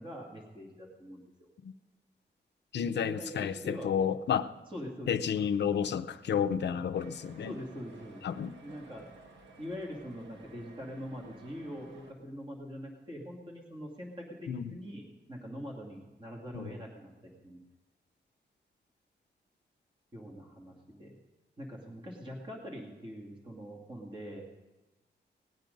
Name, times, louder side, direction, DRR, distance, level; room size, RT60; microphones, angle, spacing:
voice 1, 0.0-1.5 2.7-3.9 4.7-5.2 7.4-8.2 8.6-9.1 9.6-17.6 20.1-21.1 21.6-24.4, equal, 25° right, -1 dB, 2.3 m, -43 dB
voice 2, 2.7-4.5 5.1-7.6 8.2-8.6 14.5-14.8 16.5-16.7, left 8 dB, 70° left, 9 dB, 0.6 m, -31 dB
sound 1, 6.9-12.1, right 2 dB, 85° right, 1.8 m, -54 dB
18.5 x 9.0 x 5.3 m, 1.1 s
wide cardioid pair, 165°, 18 cm